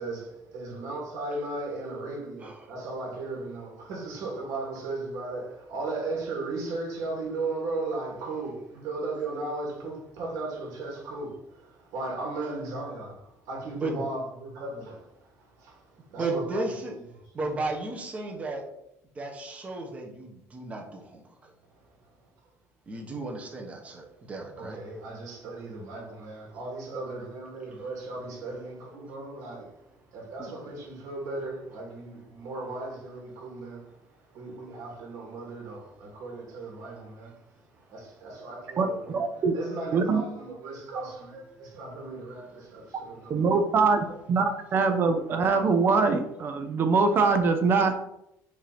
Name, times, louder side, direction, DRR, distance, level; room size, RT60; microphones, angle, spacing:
voice 1, 0.0-15.8 16.1-17.0 24.6-29.8 30.1-33.9 34.3-37.4 37.9-43.6, right 2 dB, 70° right, 2.4 m, -36 dB
voice 2, 13.8-14.1 16.2-17.0 17.3-18.6 19.1-21.5 22.9-24.8 30.4-30.5 41.5-41.6, right 2 dB, 20° right, 1.1 m, -34 dB
voice 3, 38.8-39.5 39.9-40.2 43.3-44.0 44.3-47.9, right 4 dB, 35° right, 0.6 m, -23 dB
6.5 x 2.9 x 5.1 m
cardioid pair, 165°, 6 cm